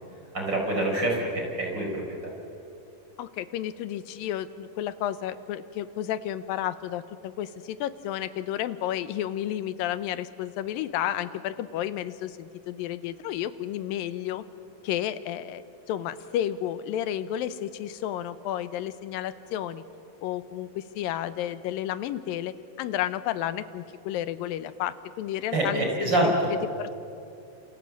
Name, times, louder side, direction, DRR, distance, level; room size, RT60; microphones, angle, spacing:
voice 1, 0.3-2.3 25.5-26.6, right 1 dB, 30° right, 0 dB, 5.4 m, -26 dB
voice 2, 3.2-14.4 14.8-19.8 20.2-26.3 26.8-26.9, left 11 dB, 85° left, 13 dB, 2.6 m, -32 dB
28.5 x 27.5 x 7.5 m, 2.6 s
omnidirectional pair, 4.0 m